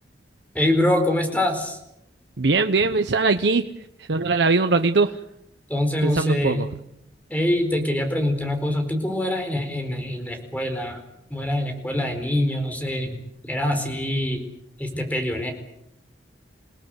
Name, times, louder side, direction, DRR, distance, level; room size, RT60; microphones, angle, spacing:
voice 1, 0.5-1.8 5.7-6.6 7.3-11.0 11.3-13.2 13.5-14.4 14.8-15.5, left 1 dB, 10° left, 5 dB, 4.5 m, -24 dB
voice 2, 2.4-3.7 4.1-5.2 6.0-6.7, right 3 dB, 80° right, 8 dB, 0.9 m, -20 dB
28.5 x 18.0 x 8.1 m, 0.81 s
head